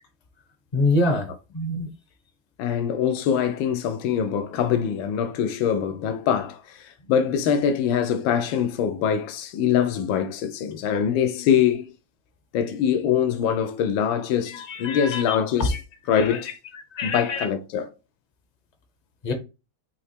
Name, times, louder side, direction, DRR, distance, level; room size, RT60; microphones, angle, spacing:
voice 1, 0.7-1.3 1.5-1.9 14.5-15.3 15.6-15.8 16.2-16.4 17.0-17.4 19.2-19.3, left 2 dB, 55° left, 0.4 m, -25 dB
voice 2, 2.6-11.9 12.5-15.7 16.1-16.5 17.0-17.9, left 8 dB, 90° left, 1.5 m, -23 dB
4.5 x 2.8 x 4.1 m
omnidirectional pair, 2.1 m